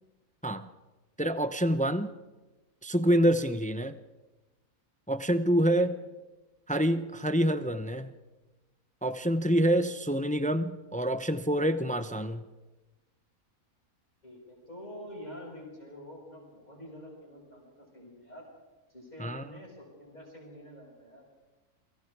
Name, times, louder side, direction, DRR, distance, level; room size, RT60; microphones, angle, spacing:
voice 1, 1.2-2.1 2.8-4.0 5.1-5.9 6.7-8.1 9.0-12.4 19.2-19.4, equal, 10° left, 11 dB, 0.4 m, -27 dB
voice 2, 5.5-5.9 9.5-9.9 14.2-18.5 18.9-21.2, left 1 dB, 30° left, -5 dB, 6.3 m, -47 dB
30.0 x 24.0 x 4.8 m, 1.2 s
omnidirectional pair, 1.6 m